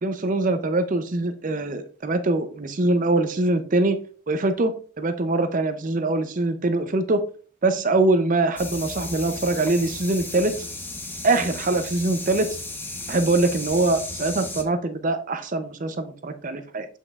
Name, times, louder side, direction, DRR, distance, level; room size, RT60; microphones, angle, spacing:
voice 1, 0.0-4.0 4.3-4.7 5.0-7.2 7.6-10.5 11.2-12.6 13.1-16.9, right 2 dB, 35° right, 9 dB, 0.5 m, -23 dB
sound 1, 8.6-14.6, left 2 dB, 10° left, 0.7 m, -35 dB
8.1 x 5.5 x 2.4 m, 0.43 s
head